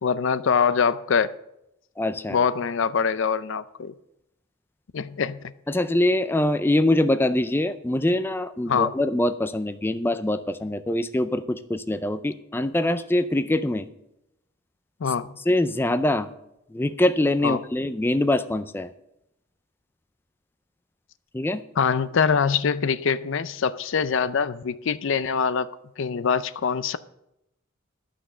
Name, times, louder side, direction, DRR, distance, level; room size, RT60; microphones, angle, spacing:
voice 1, 0.0-1.3 2.3-3.9 4.9-5.4 8.7-8.9 15.0-15.4 17.4-17.6 21.8-27.0, left 6 dB, 65° left, 0.5 m, -24 dB
voice 2, 2.0-2.4 5.7-13.9 15.5-16.3 16.7-18.9 21.3-21.6, left 1 dB, 10° left, 0.4 m, -24 dB
11.5 x 6.2 x 6.7 m
head